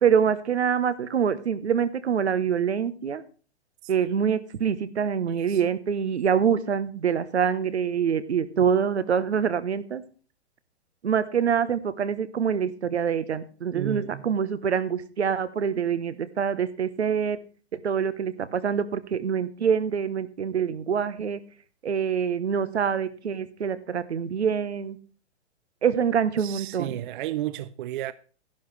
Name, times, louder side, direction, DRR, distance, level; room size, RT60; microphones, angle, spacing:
voice 1, 0.0-3.2 3.9-10.0 11.0-17.4 17.7-21.4 21.8-25.0 25.8-26.9, right 7 dB, 80° right, 1.2 m, -25 dB
voice 2, 5.3-5.6 13.7-14.3 26.4-28.1, right 13 dB, 50° right, 0.6 m, -33 dB
12.0 x 11.5 x 3.3 m
hypercardioid pair, 120°, 33 cm